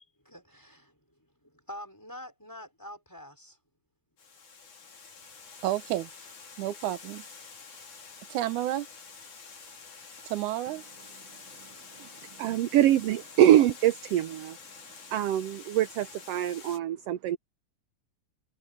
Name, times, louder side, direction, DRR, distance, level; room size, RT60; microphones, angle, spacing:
voice 1, 0.0-3.6 6.0-6.1 6.6-6.7, left 1 dB, 5° left, 5.3 m, -46 dB
Water, 4.2-16.8, left 5 dB, 85° left, 5.8 m, -48 dB
voice 2, 5.6-6.1 6.6-7.2 8.3-8.9 10.3-10.8, right 14 dB, 85° right, 2.3 m, -30 dB
voice 3, 12.4-14.6 15.1-17.4, right 12 dB, 70° right, 1.6 m, -24 dB
omnidirectional pair, 3.4 m